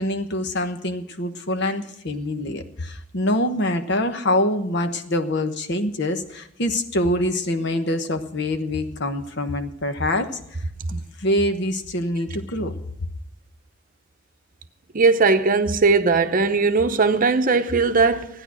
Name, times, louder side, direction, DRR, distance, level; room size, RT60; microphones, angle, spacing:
voice 1, 0.0-10.4 10.9-12.7, left 1 dB, 60° left, 1.1 m, -25 dB
voice 2, 14.9-18.3, right 4 dB, 45° right, 0.8 m, -18 dB
14.5 x 10.0 x 6.2 m
head